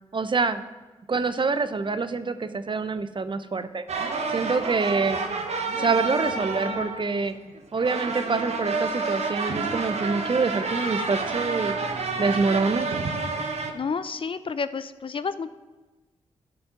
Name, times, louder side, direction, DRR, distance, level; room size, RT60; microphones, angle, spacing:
voice 1, 0.1-0.6 1.1-3.8 4.3-5.2 5.8-7.3 7.7-11.8 12.2-12.9, right 4 dB, 40° right, 11 dB, 0.8 m, -26 dB
sound 1, 3.9-13.7, right 4 dB, 65° right, 1.0 m, -29 dB
voice 2, 13.7-15.5, left 5 dB, 45° left, 13 dB, 0.5 m, -30 dB
12.0 x 5.2 x 5.9 m, 1.2 s
supercardioid pair, 40°, 12 cm